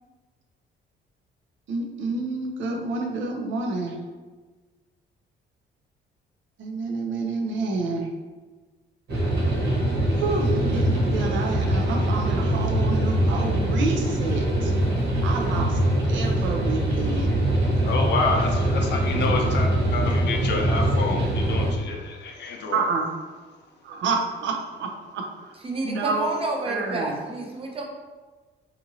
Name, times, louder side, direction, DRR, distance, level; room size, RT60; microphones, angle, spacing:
voice 1, 1.7-4.0 6.6-8.1 10.2-14.7 15.2-15.8 16.1-17.5 22.7-23.1 23.8-26.3 26.6-27.2, right 3 dB, 75° right, 2 dB, 0.5 m, -29 dB
sound 1, 9.1-21.7, right 1 dB, 55° right, 1.2 m, -23 dB
voice 2, 17.9-22.8, left 3 dB, 60° left, 1 dB, 0.6 m, -28 dB
voice 3, 25.6-27.8, right 2 dB, 30° right, 0 dB, 0.6 m, -29 dB
2.7 x 2.5 x 2.7 m, 1.3 s
cardioid pair, 90°, 20 cm